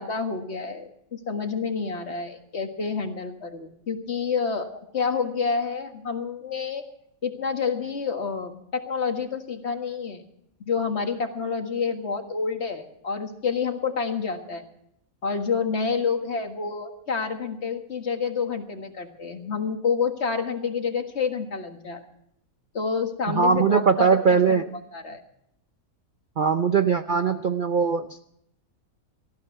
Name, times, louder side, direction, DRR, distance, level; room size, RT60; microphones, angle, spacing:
voice 1, 0.0-6.8 7.2-10.2 10.6-14.6 15.2-22.0 22.7-24.6 24.9-25.2, left 5 dB, 50° left, 6 dB, 1.9 m, -28 dB
voice 2, 23.3-24.7 26.4-28.2, right 5 dB, 50° right, 9 dB, 0.6 m, -21 dB
18.5 x 14.5 x 4.6 m, 0.75 s
omnidirectional pair, 1.5 m